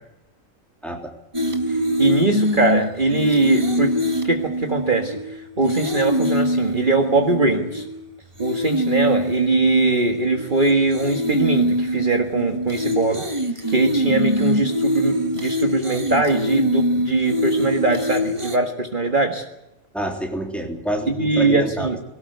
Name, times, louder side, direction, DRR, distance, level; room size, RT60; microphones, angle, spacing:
sound 1, 1.3-8.0 8.4-18.6, equal, 25° right, 1.9 m, -24 dB
voice 1, 1.7-4.0 4.2-7.8 8.4-13.3 13.7-19.4 21.1-22.0, right 3 dB, 40° right, 3 dB, 1.9 m, -21 dB
voice 2, 19.9-21.9, right 1 dB, ahead, 2 dB, 3.4 m, -27 dB
22.0 x 18.0 x 8.1 m, 0.94 s
omnidirectional pair, 1.4 m